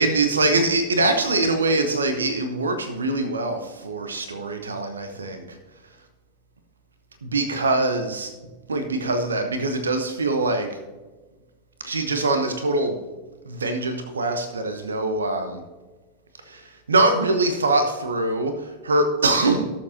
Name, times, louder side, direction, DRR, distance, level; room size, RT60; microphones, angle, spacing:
voice 1, 0.0-5.6 7.2-8.3 8.7-10.8 11.8-13.0 13.5-15.6 16.4-19.7, right 2 dB, 70° right, 7 dB, 1.0 m, -23 dB
18.0 x 7.3 x 2.8 m, 1.2 s
figure-of-eight pair, 90°, 0 cm